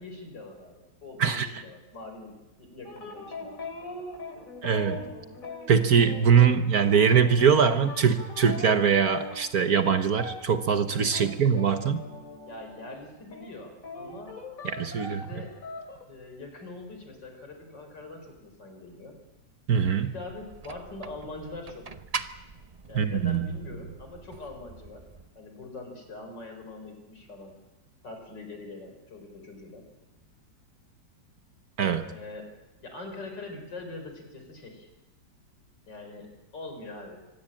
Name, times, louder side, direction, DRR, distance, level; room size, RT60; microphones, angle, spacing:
voice 1, 0.0-4.0 11.2-11.3 12.4-14.4 15.0-15.5 16.1-19.2 20.0-21.9 22.9-25.0 25.4-27.5 28.0-29.9 32.1-32.5 32.8-34.9 35.9-37.2, left 2 dB, 70° left, 4 dB, 5.3 m, -43 dB
sound 1, 2.9-13.0 13.3-16.0, left 3 dB, 45° left, 3.1 m, -42 dB
voice 2, 4.6-5.1 5.7-12.0 14.6-15.3 19.7-20.1 22.9-23.5 31.8-32.1, right 7 dB, 55° right, 9 dB, 1.5 m, -22 dB
sound 2, 20.3-25.3, right 5 dB, 40° right, 0.5 m, -42 dB
25.0 x 16.5 x 8.9 m, 1.0 s
omnidirectional pair, 2.0 m